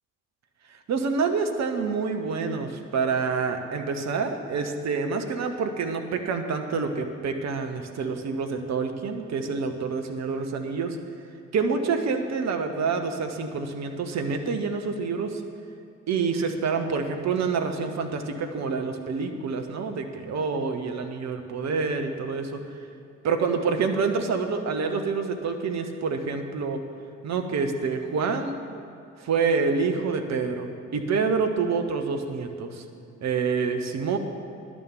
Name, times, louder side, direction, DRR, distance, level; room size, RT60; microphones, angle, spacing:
voice 1, 0.9-11.0 11.5-15.4 16.1-22.6 23.2-26.8 27.2-28.6 29.2-32.8 33.2-34.2, right 5 dB, 45° right, 5 dB, 1.1 m, -27 dB
10.5 x 6.2 x 8.5 m, 2.7 s
figure-of-eight pair, 40°, 39 cm